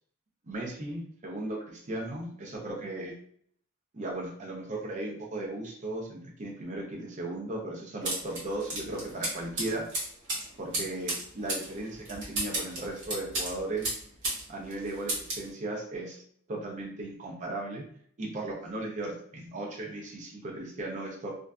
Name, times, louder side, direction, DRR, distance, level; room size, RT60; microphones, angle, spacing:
voice 1, 0.5-3.1 3.9-9.9 10.6-13.9 14.5-16.2 16.5-17.8 18.2-21.3, right 2 dB, 35° right, -2 dB, 0.5 m, -36 dB
sound 1, 8.0-14.4 14.7-15.5, right 1 dB, 60° right, 1.0 m, -34 dB
2.5 x 2.2 x 2.2 m, 0.62 s
head